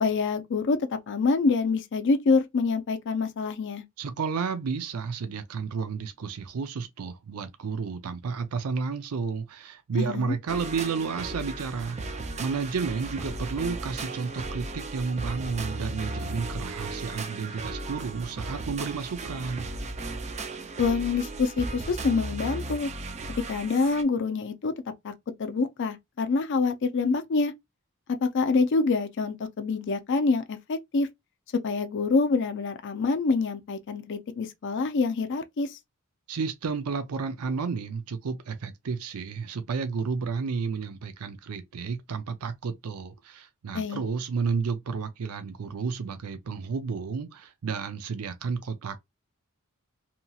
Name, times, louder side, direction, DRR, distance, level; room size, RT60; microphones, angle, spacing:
voice 1, 0.0-3.8 10.0-10.4 20.8-22.9 23.5-24.7 25.0-25.1 25.4-27.5 28.1-31.1 31.6-35.8 43.7-44.0, left 4 dB, 55° left, 0.4 m, -26 dB
voice 2, 4.0-12.0 12.4-19.7 36.3-49.0, right 5 dB, 85° right, 0.5 m, -31 dB
sound 1, 10.5-24.0, right 2 dB, 30° right, 0.4 m, -36 dB
2.9 x 2.7 x 2.3 m
head